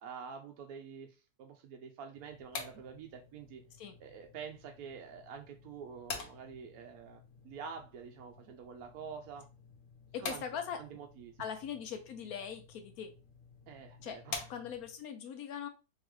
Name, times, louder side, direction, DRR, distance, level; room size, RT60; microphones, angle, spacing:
voice 1, 0.0-3.6 4.0-9.5 10.2-10.4 10.8-11.3 13.7-14.4, right 6 dB, 70° right, 3 dB, 1.0 m, -47 dB
sound 1, 2.2-15.0, left 4 dB, 60° left, 1.1 m, -48 dB
voice 2, 10.1-11.0 11.4-13.1 14.0-14.2 14.5-15.7, left 8 dB, 75° left, 7 dB, 1.0 m, -41 dB
3.8 x 2.9 x 3.1 m, 0.30 s
omnidirectional pair, 1.7 m